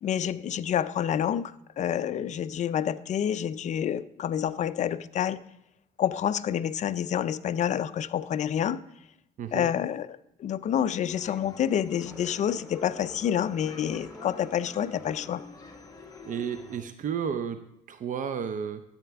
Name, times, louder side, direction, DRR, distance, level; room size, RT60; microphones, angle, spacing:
voice 1, 0.0-5.4 6.0-8.8 9.5-15.4, left 9 dB, 45° left, 14 dB, 0.4 m, -28 dB
voice 2, 9.4-9.7 16.2-18.8, right 7 dB, 50° right, 9 dB, 0.6 m, -32 dB
sound 1, 10.9-11.4 12.0-15.4, equal, 5° right, 0.9 m, -48 dB
sound 2, 11.1-16.8, left 3 dB, 20° left, 1.6 m, -48 dB
12.5 x 8.6 x 3.5 m, 0.80 s
cardioid pair, 110°, 17 cm